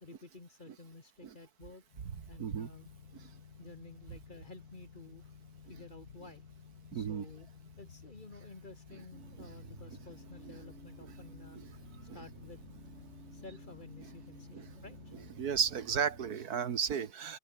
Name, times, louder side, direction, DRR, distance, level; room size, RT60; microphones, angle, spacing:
voice 1, 0.0-1.8 2.3-2.9 3.6-5.3 5.7-6.4 6.9-7.5 7.8-11.6 12.1-12.6 13.3-15.1, left 3 dB, 30° left, 2.0 m, -52 dB
sound 1, 1.9-15.3, left 6 dB, 60° left, 2.3 m, -54 dB
voice 2, 2.4-2.7 6.9-7.3 9.4-9.5 12.1-12.2 14.5-14.7 15.4-17.4, right 7 dB, 65° right, 1.7 m, -34 dB
sound 2, 9.1-16.3, right 3 dB, 40° right, 3.2 m, -53 dB
open air
omnidirectional pair, 1.8 m